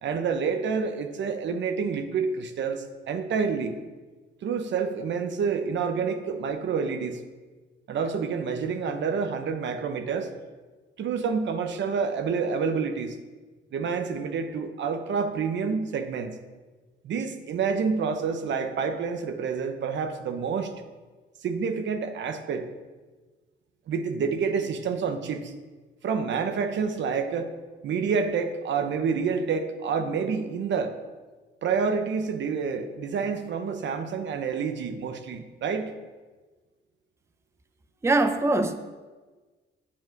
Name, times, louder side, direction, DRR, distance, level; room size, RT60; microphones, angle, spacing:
voice 1, 0.0-3.8 4.4-7.2 7.9-10.3 11.0-13.2 13.7-16.4 17.0-20.7 21.4-22.7 23.9-25.5 26.0-27.5 27.8-31.0 31.6-35.9, right 5 dB, 65° right, 8 dB, 0.9 m, -28 dB
voice 2, 38.0-38.7, right 2 dB, 15° right, 9 dB, 0.6 m, -22 dB
8.7 x 7.4 x 4.5 m, 1.3 s
cardioid pair, 90°, 20 cm